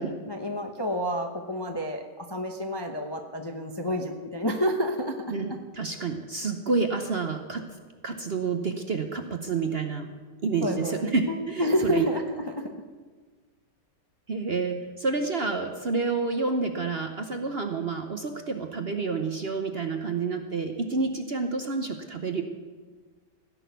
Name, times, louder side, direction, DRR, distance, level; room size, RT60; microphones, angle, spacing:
voice 1, 0.0-5.3 10.6-12.7, equal, 20° left, 4 dB, 0.7 m, -29 dB
voice 2, 5.3-7.6 8.0-10.1 10.4-12.0 14.3-22.4, right 4 dB, 45° right, 5 dB, 0.9 m, -29 dB
16.5 x 6.4 x 9.3 m, 1.4 s
omnidirectional pair, 1.9 m